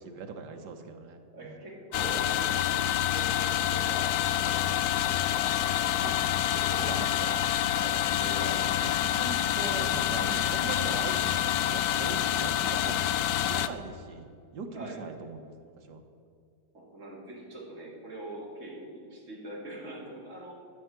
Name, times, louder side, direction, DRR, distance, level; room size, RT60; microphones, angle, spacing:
voice 1, 0.0-1.6 6.0-7.5 8.5-14.3 14.5-16.0, right 4 dB, 85° right, 6 dB, 1.7 m, -41 dB
voice 2, 1.3-6.4 7.7-9.0 14.7-15.0 16.7-20.5, right 1 dB, 45° right, -4 dB, 3.2 m, -43 dB
sound 1, 1.9-13.7, left 12 dB, 75° left, 1.0 m, -27 dB
12.5 x 5.7 x 9.4 m, 2.3 s
omnidirectional pair, 1.8 m